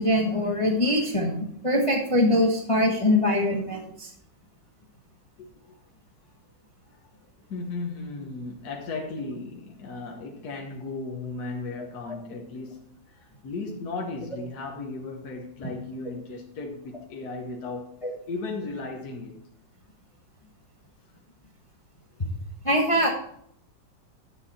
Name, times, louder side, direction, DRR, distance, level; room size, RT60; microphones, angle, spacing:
voice 1, 0.0-4.1 12.1-12.2 18.0-18.1 22.6-23.1, left 1 dB, 20° left, 1.2 m, -23 dB
voice 2, 7.5-17.9 18.3-19.4, left 3 dB, 55° left, 1.8 m, -36 dB
11.0 x 7.1 x 4.3 m
omnidirectional pair, 2.1 m